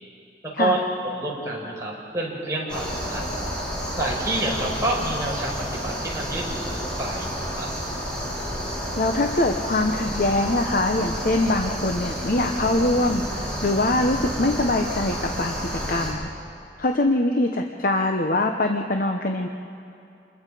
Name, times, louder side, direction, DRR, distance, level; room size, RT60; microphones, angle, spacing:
voice 1, 1.0-3.2 4.0-7.7, right 1 dB, 20° right, -4 dB, 5.1 m, -28 dB
sound 1, 2.7-16.1, equal, 5° left, 5.5 m, -30 dB
voice 2, 9.0-16.3 16.8-19.5, left 2 dB, 50° left, 3 dB, 0.9 m, -23 dB
28.0 x 21.5 x 5.0 m, 2.8 s
head